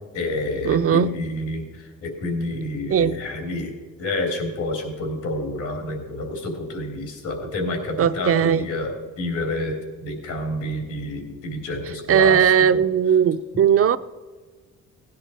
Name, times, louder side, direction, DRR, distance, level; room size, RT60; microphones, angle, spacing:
voice 1, 0.1-12.4 12.7-12.8, left 2 dB, 80° left, 3 dB, 3.4 m, -29 dB
voice 2, 0.6-1.2 2.9-3.2 8.0-8.7 12.1-14.0, right 8 dB, 50° right, 12 dB, 0.7 m, -18 dB
17.0 x 9.9 x 4.4 m, 1.4 s
cardioid pair, 90°, 30 cm